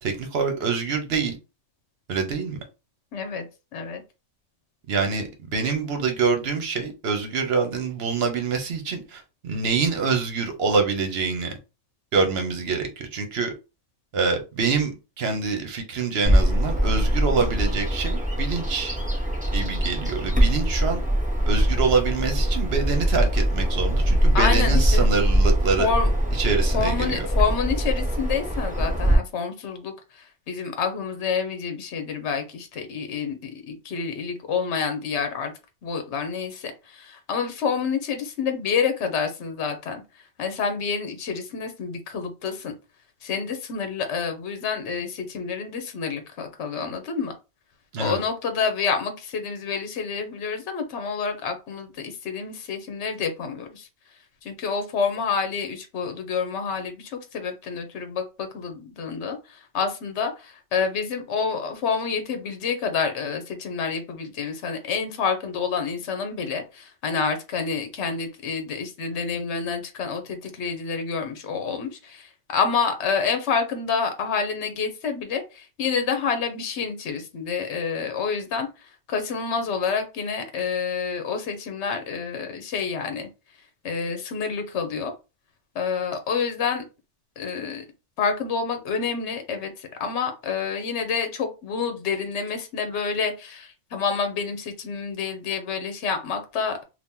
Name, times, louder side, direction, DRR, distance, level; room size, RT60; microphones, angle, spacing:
voice 1, 0.0-1.3 2.1-2.6 4.9-11.5 12.1-13.5 14.1-19.0 19.5-21.0 21.5-25.9 26.3-27.3 47.9-48.2, right 5 dB, 60° right, 1.0 m, -25 dB
voice 2, 3.1-3.4 3.7-4.0 24.3-25.1 25.8-26.1 26.7-35.5 35.8-40.0 40.4-42.7 43.2-47.3 48.0-53.9 54.4-78.7 79.1-83.3 83.8-85.1 85.7-86.8 87.4-87.8 88.2-96.8, left 5 dB, 70° left, 1.0 m, -28 dB
Bird vocalization bird call bird song, 16.2-29.1, equal, 10° right, 0.8 m, -22 dB
2.8 x 2.6 x 3.6 m
omnidirectional pair, 1.2 m